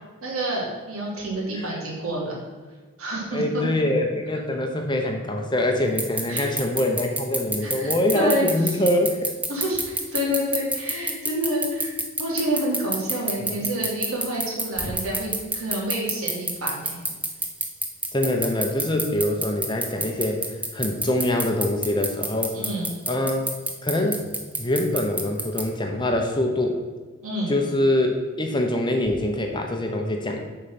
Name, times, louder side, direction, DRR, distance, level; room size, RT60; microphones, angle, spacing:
voice 1, 0.2-2.4 3.0-3.6 6.3-6.5 7.6-8.8 9.5-17.0 22.5-22.9 27.2-27.6, equal, 75° right, -4 dB, 3.1 m, -28 dB
voice 2, 3.3-9.3 13.4-13.6 18.1-22.6 23.1-23.5 23.8-24.2 24.6-26.8 27.5-30.4, left 1 dB, 20° left, 3 dB, 0.8 m, -24 dB
sound 1, 6.0-25.6, right 2 dB, 5° right, 0.6 m, -26 dB
8.3 x 5.7 x 5.8 m, 1.4 s
head